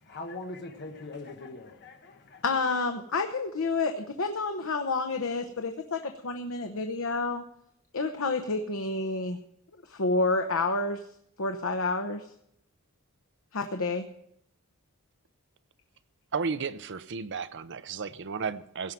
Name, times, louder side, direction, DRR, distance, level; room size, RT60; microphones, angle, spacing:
voice 1, 0.0-2.4, left 2 dB, 50° left, 3 dB, 1.4 m, -41 dB
voice 2, 2.4-7.4 7.9-9.4 9.9-11.0 11.4-12.2 13.5-14.1, left 3 dB, 65° left, 5 dB, 0.9 m, -29 dB
voice 3, 16.3-18.9, right 5 dB, 55° right, 12 dB, 0.7 m, -33 dB
17.0 x 5.7 x 9.1 m, 0.73 s
head